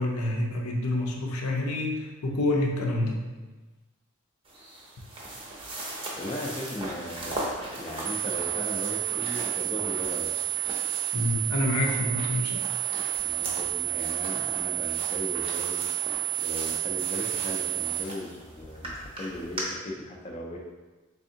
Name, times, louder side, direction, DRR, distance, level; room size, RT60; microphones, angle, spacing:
voice 1, 0.0-3.2 11.1-12.6, left 1 dB, 85° left, 1 dB, 0.6 m, -27 dB
sound 1, 4.4-19.6, right 1 dB, 25° right, 0.5 m, -39 dB
voice 2, 6.2-7.5 7.8-10.3 13.2-15.8 16.4-20.6, left 1 dB, 25° left, -1 dB, 0.3 m, -37 dB
sound 2, 8.0-18.0, right 18 dB, 75° right, 0.3 m, -30 dB
3.4 x 3.4 x 2.7 m, 1.2 s
head